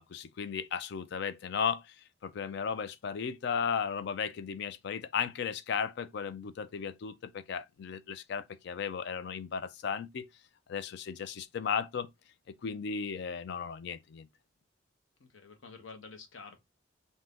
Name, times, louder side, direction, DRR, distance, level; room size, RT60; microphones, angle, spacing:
voice 1, 0.0-1.8 2.2-10.3 10.7-12.1 12.6-14.3, left 6 dB, 60° left, 0.3 m, -35 dB
voice 2, 15.2-16.6, left 4 dB, 80° left, 0.8 m, -49 dB
2.7 x 2.6 x 3.4 m
head